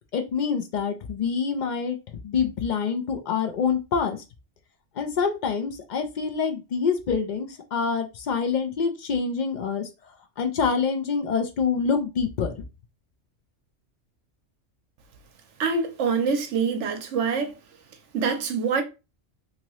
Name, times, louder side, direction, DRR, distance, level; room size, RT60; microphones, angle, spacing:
voice 1, 0.1-2.0 2.2-4.2 5.0-9.9 10.4-12.5, left 6 dB, 60° left, 0.4 m, -26 dB
voice 2, 15.6-17.5 18.1-18.8, right 5 dB, 70° right, 1.0 m, -25 dB
2.9 x 2.6 x 2.9 m
omnidirectional pair, 1.3 m